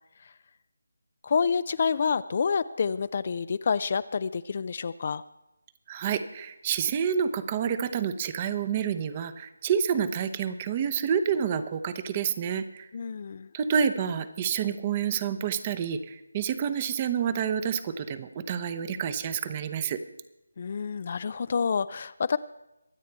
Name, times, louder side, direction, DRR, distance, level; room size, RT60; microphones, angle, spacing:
voice 1, 1.2-5.2 12.9-13.5 20.6-22.4, left 6 dB, 40° left, 15 dB, 0.4 m, -28 dB
voice 2, 5.9-12.9 13.5-20.0, right 7 dB, 25° right, 12 dB, 0.8 m, -28 dB
23.5 x 8.3 x 4.6 m, 0.93 s
figure-of-eight pair, 155°, 0 cm